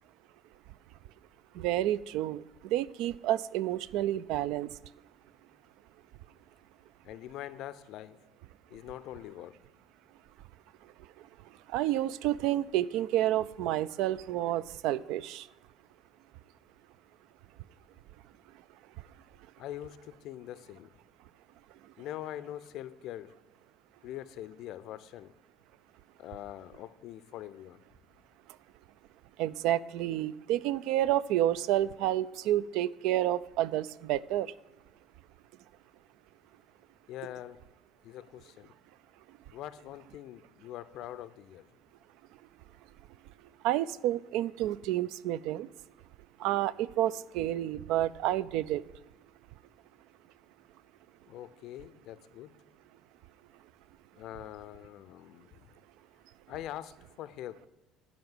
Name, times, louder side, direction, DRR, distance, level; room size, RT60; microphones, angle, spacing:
voice 1, 1.6-4.7 11.7-15.4 29.4-34.5 43.6-45.7 46.4-48.8, right 13 dB, 65° right, 19 dB, 0.3 m, -29 dB
voice 2, 7.0-8.2 8.7-9.6 19.6-20.9 22.0-23.4 24.0-25.3 26.2-27.8 37.1-37.6 38.0-38.7 39.5-41.7 51.3-52.5 54.2-55.5 56.5-57.7, left 12 dB, 60° left, 15 dB, 0.4 m, -43 dB
11.0 x 5.1 x 7.1 m, 1.1 s
hypercardioid pair, 60°, 0 cm